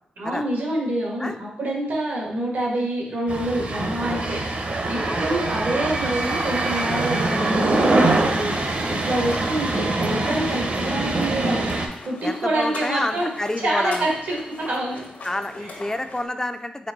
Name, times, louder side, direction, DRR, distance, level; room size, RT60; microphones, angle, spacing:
voice 1, 0.2-4.4 4.9-11.6 12.0-13.3 13.6-14.4 14.7-15.0 15.6-15.7, right 1 dB, 85° right, -2 dB, 1.5 m, -26 dB
sound 1, 3.3-11.9, right 2 dB, 50° right, 0.7 m, -24 dB
FX - pasos, 9.2-16.3, left 2 dB, 70° left, 0.9 m, -41 dB
voice 2, 9.4-10.0 12.2-14.1 15.2-16.9, left 1 dB, 20° left, 8 dB, 0.3 m, -29 dB
4.4 x 2.9 x 3.9 m, 0.74 s
cardioid pair, 65°, 3 cm